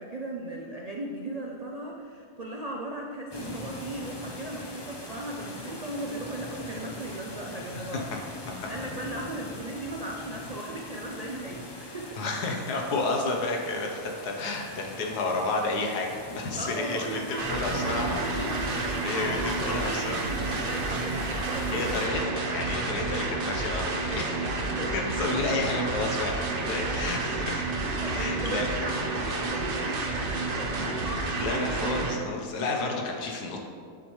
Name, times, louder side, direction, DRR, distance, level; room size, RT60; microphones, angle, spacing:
voice 1, 0.0-8.1 8.7-12.2 16.4-21.7 24.6-24.9 28.0-31.5, right 1 dB, 70° right, 0 dB, 0.3 m, -37 dB
sound 1, 3.3-22.1, left 1 dB, 25° left, 0.5 m, -43 dB
voice 2, 12.2-16.1 16.4-18.7 19.0-20.2 20.5-20.7 21.7-24.4 24.9-27.7 28.0-28.6 31.3-33.6, left 3 dB, 80° left, 1 dB, 1.6 m, -31 dB
sound 2, 17.4-32.2, right 3 dB, 45° right, 0.8 m, -30 dB
9.4 x 7.5 x 3.2 m, 2.2 s
omnidirectional pair, 1.7 m